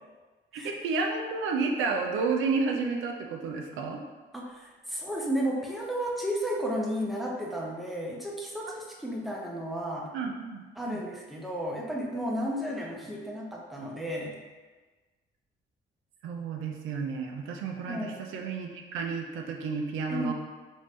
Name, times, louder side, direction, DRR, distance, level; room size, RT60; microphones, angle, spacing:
voice 1, 0.5-4.0 10.1-11.0 16.2-20.3, right 4 dB, 85° right, 2 dB, 0.5 m, -31 dB
voice 2, 4.3-10.1 10.8-14.4 17.9-18.2 20.1-20.3, equal, ahead, -2 dB, 0.6 m, -33 dB
3.1 x 2.6 x 3.4 m, 1.3 s
cardioid pair, 90°, 20 cm